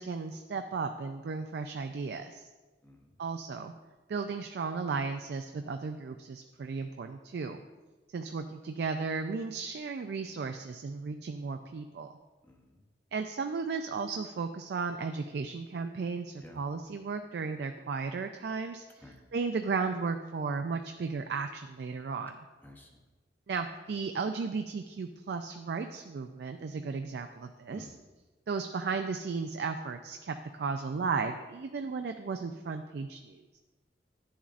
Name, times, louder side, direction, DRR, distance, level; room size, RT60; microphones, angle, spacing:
voice 1, 0.0-2.5 3.2-3.7 4.1-7.6 8.1-12.1 13.1-19.0 19.3-22.4 23.5-27.9 28.5-33.6, right 4 dB, 65° right, 7 dB, 0.3 m, -35 dB
voice 2, 2.8-3.2 12.4-12.8 16.4-16.6 19.0-19.2 22.6-23.0 27.7-28.0, left 1 dB, 10° left, 1 dB, 0.7 m, -52 dB
10.5 x 7.1 x 2.5 m, 1.3 s
head